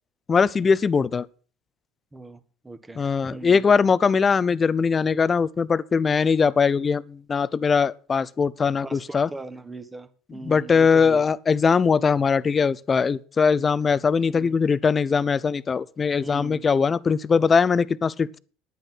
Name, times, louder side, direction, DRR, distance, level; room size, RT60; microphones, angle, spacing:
voice 1, 0.3-1.3 3.0-9.3 10.4-18.4, left 5 dB, 30° left, 0.6 m, -21 dB
voice 2, 2.1-3.0 3.3-3.6 8.8-11.2 14.2-14.5 16.2-16.7, right 2 dB, 15° right, 1.6 m, -40 dB
10.5 x 9.0 x 5.8 m
hypercardioid pair, 75°, 0 cm